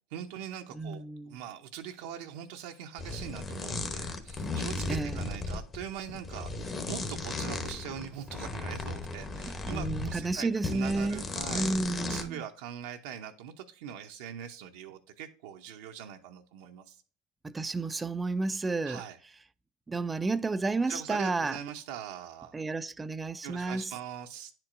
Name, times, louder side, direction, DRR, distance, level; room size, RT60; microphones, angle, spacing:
voice 1, 0.1-11.7 12.1-17.0 18.9-19.2 20.9-22.5 23.4-24.5, right 9 dB, 75° right, 0.6 m, -42 dB
voice 2, 0.7-1.4 4.9-5.2 9.4-11.2 11.5-12.4 17.4-19.0 19.9-21.6 22.5-23.9, right 3 dB, 15° right, 0.3 m, -31 dB
sound 1, 3.0-10.3 10.6-12.2, left 3 dB, 30° left, 1.0 m, -36 dB
9.6 x 4.4 x 2.5 m
supercardioid pair, 100°, 0 cm